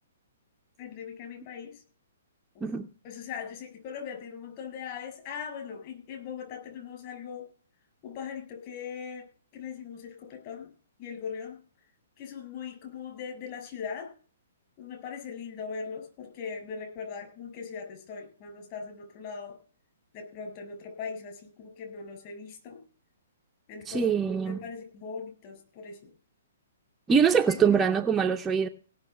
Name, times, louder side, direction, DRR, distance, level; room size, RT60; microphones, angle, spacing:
voice 1, 0.8-1.8 2.5-2.7 3.0-7.5 8.0-9.3 9.5-10.7 11.0-11.6 12.2-14.1 14.8-19.6 20.1-22.8 23.7-24.1 24.5-26.1 27.1-27.2 27.5-27.9, left 6 dB, 35° left, 6.8 m, -40 dB
voice 2, 23.9-24.6 27.1-28.7, right 6 dB, 15° right, 0.7 m, -23 dB
17.0 x 6.6 x 8.0 m
figure-of-eight pair, 120°, 0 cm